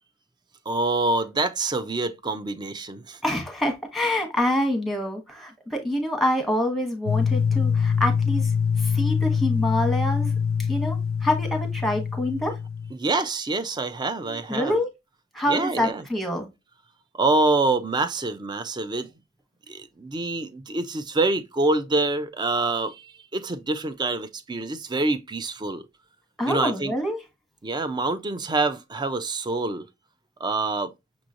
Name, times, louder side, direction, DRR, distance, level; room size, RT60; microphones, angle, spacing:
voice 1, 0.7-3.2 12.9-14.8 15.5-16.0 17.1-19.1 19.7-25.9 26.5-26.9 27.6-29.9 30.4-30.9, right 2 dB, 20° right, 0.4 m, -26 dB
voice 2, 3.2-8.5 8.8-10.3 10.7-12.6 14.2-14.9 15.3-16.5 26.4-27.2, left 1 dB, ahead, 1.2 m, -26 dB
sound 1, 7.1-12.9, left 6 dB, 85° left, 0.3 m, -24 dB
6.1 x 3.0 x 2.5 m
head